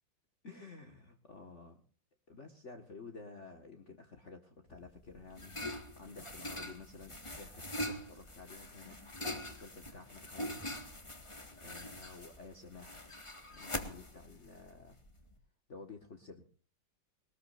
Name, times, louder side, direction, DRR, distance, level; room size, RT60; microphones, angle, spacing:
voice 1, 0.4-1.8 2.3-5.5 6.0-10.6 11.5-13.1 13.5-15.0 15.7-16.4, left 4 dB, 40° left, 4 dB, 2.0 m, -52 dB
sound 1, 4.7-15.3, left 1 dB, 15° left, 1.8 m, -43 dB
22.0 x 20.0 x 2.6 m, 0.39 s
omnidirectional pair, 2.0 m